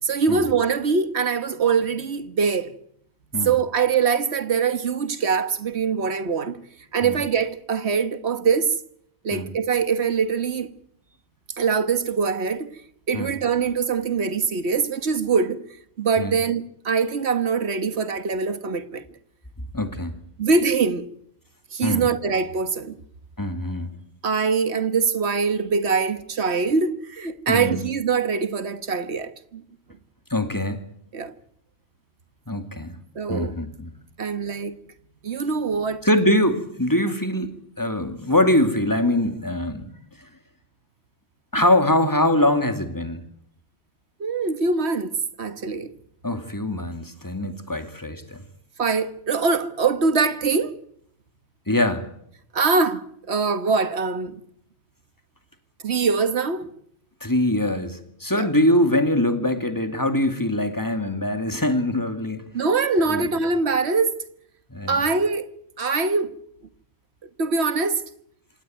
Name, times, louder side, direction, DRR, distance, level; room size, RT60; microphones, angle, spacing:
voice 1, 0.0-2.7 3.4-6.6 6.9-8.7 9.2-10.7 11.6-12.7 13.1-15.6 16.0-19.0 20.4-21.1 21.7-23.0 24.2-29.6 31.1-31.3 33.2-33.5 34.2-34.8 35.2-36.0 44.2-45.9 48.8-50.8 52.5-54.4 55.8-56.7 58.3-58.5 62.5-64.2 64.9-65.5 65.8-66.4 67.4-68.0, right 5 dB, 75° right, 1.7 m, -23 dB
voice 2, 19.7-20.2 21.8-22.1 23.4-23.9 27.5-27.8 30.3-30.8 32.5-33.0 33.3-33.9 36.0-39.9 41.5-43.2 46.2-48.4 51.7-52.0 57.2-62.4 63.1-63.3 64.7-65.0, left 1 dB, 15° left, 2.4 m, -23 dB
26.5 x 18.0 x 9.3 m
omnidirectional pair, 1.1 m